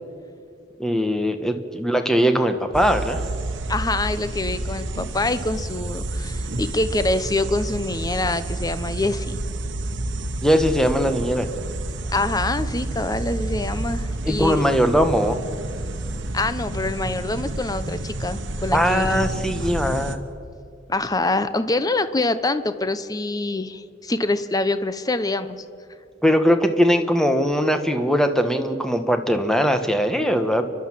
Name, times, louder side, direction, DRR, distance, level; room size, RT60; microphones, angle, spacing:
voice 1, 0.8-3.2 10.4-11.5 14.2-15.4 18.7-20.2 26.2-30.6, equal, 5° left, 7 dB, 1.2 m, -20 dB
sound 1, 2.7-20.2, right 2 dB, 70° right, 1.2 m, -29 dB
voice 2, 3.7-9.4 12.1-14.6 16.3-19.7 20.9-25.6, left 2 dB, 20° left, 12 dB, 0.8 m, -25 dB
29.5 x 11.5 x 7.5 m, 2.4 s
head